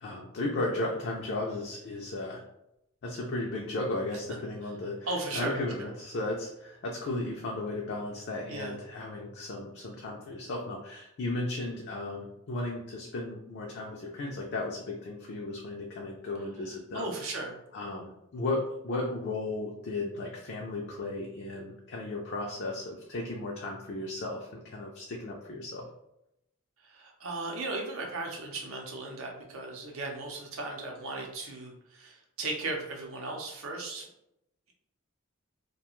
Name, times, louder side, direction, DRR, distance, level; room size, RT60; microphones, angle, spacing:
voice 1, 0.0-2.4 3.0-17.3 17.7-25.8, left 2 dB, 55° left, -1 dB, 0.4 m, -35 dB
voice 2, 5.1-5.9 8.5-8.8 16.9-17.6 26.8-34.1, right 2 dB, 75° right, 0 dB, 0.6 m, -36 dB
2.4 x 2.2 x 2.9 m, 0.83 s
head